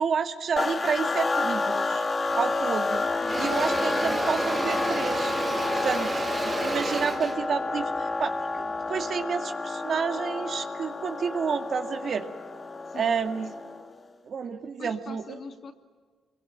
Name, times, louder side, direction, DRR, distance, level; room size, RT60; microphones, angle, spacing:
voice 1, 0.0-2.1 2.4-3.0 3.4-5.3 5.8-6.1 6.4-12.3 12.9-13.5 14.2-15.4, right 6 dB, 55° right, 2.1 m, -30 dB
sound 1, 0.6-13.9, left 3 dB, 30° left, 1.8 m, -30 dB
Engine / Drill, 2.3-2.5 2.9-9.0, right 3 dB, 25° right, 2.6 m, -32 dB
voice 2, 3.0-3.6 6.0-6.3 12.9-13.2 14.8-15.7, left 5 dB, 50° left, 2.7 m, -43 dB
25.5 x 23.0 x 9.2 m
cardioid pair, 90°, 0 cm